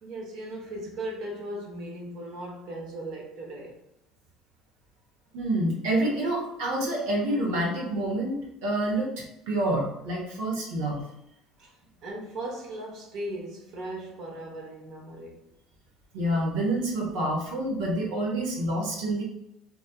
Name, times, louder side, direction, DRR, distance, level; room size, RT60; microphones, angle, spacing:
voice 1, 0.0-3.8 11.6-15.5, right 1 dB, 60° right, 0.9 m, -38 dB
voice 2, 5.3-9.1 9.5-11.0 16.1-19.2, right 1 dB, 85° right, 1.0 m, -27 dB
3.1 x 2.3 x 2.2 m
supercardioid pair, 105°, 0 cm